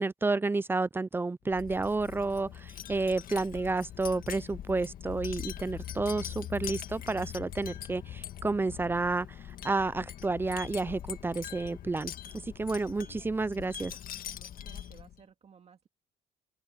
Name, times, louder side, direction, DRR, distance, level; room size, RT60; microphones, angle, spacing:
voice 1, 0.0-9.4 9.6-12.1 12.6-13.9, right 3 dB, 15° right, 0.4 m, -30 dB
Wind chime, 1.5-15.2, left 10 dB, 55° left, 1.7 m, -42 dB
voice 2, 10.8-11.4 13.0-13.3 13.6-14.0 14.3-15.9, right 6 dB, 40° right, 2.3 m, -59 dB
open air
cardioid pair, 110°, 17 cm